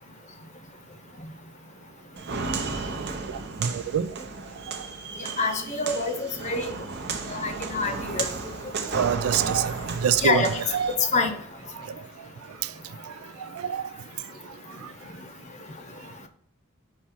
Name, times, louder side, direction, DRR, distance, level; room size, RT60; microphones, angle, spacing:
voice 1, 1.6-2.2 5.0-9.0 10.2-10.5 10.9-16.3, left 3 dB, 35° left, 0.8 m, -31 dB
Walk footsteps, 2.2-10.9, right 4 dB, 50° right, 0.7 m, -33 dB
voice 2, 3.6-4.1 8.8-9.7 10.0-10.5 10.7-11.0 13.5-13.9, right 8 dB, 80° right, 0.3 m, -25 dB
5.9 x 3.0 x 5.5 m
head